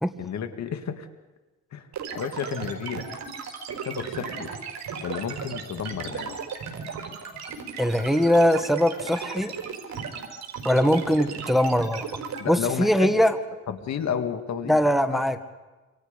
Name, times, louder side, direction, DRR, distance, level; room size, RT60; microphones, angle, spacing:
voice 1, 0.2-1.1 1.7-1.9 2.1-3.1 3.8-4.5 5.0-6.4 12.4-13.2 13.7-14.8 15.1-15.2, left 8 dB, 65° left, 8 dB, 2.1 m, -31 dB
sound 1, 1.9-12.4, right 6 dB, 65° right, 4.9 m, -35 dB
voice 2, 7.8-9.5 10.6-12.1 12.5-13.4 14.7-15.4, equal, ahead, 8 dB, 1.6 m, -21 dB
27.0 x 26.5 x 5.2 m, 1.2 s
cardioid pair, 90°, 30 cm